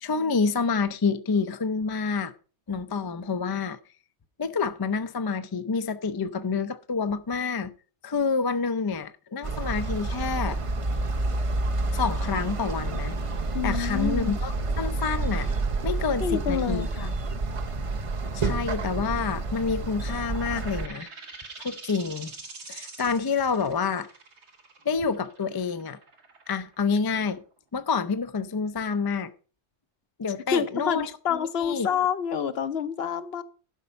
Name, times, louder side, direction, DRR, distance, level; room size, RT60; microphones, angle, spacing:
voice 1, 0.0-2.3 2.7-3.8 4.4-7.7 8.0-10.6 11.9-13.2 13.6-15.5 15.8-17.1 18.3-21.1 21.6-22.3 22.7-24.1 24.8-26.0 26.5-27.4 27.7-29.3 30.2-31.9, left 5 dB, 30° left, 0.4 m, -28 dB
sound 1, 9.4-20.9, right 3 dB, 35° right, 0.6 m, -29 dB
voice 2, 13.5-14.3 16.2-17.1 30.5-33.4, left 7 dB, 65° left, 1.0 m, -28 dB
sound 2, 20.2-27.5, right 4 dB, 80° right, 1.8 m, -44 dB
12.0 x 5.4 x 5.4 m
omnidirectional pair, 1.1 m